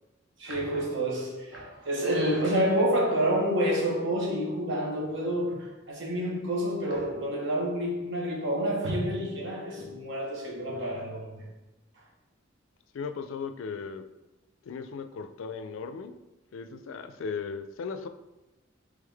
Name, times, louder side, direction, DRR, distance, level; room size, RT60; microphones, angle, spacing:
voice 1, 0.4-11.4, equal, 70° right, 1.1 m, -28 dB
voice 2, 12.9-14.0 14.7-16.1 16.5-18.1, left 5 dB, 75° left, 0.3 m, -37 dB
3.7 x 3.2 x 3.4 m
head